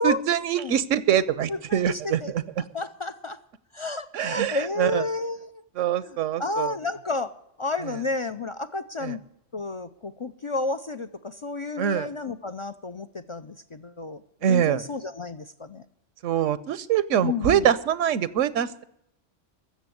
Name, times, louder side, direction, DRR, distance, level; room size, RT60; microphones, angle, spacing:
voice 1, 0.0-2.4 4.1-5.0 5.8-6.7 9.0-9.2 11.8-12.1 14.4-14.8 16.2-18.8, right 10 dB, 85° right, 17 dB, 1.1 m, -24 dB
voice 2, 1.5-2.3 2.7-3.4 3.7-5.6 6.0-9.2 9.5-15.8 17.2-17.7, left 3 dB, 50° left, 11 dB, 0.3 m, -31 dB
14.5 x 7.0 x 9.3 m, 0.78 s
omnidirectional pair, 1.3 m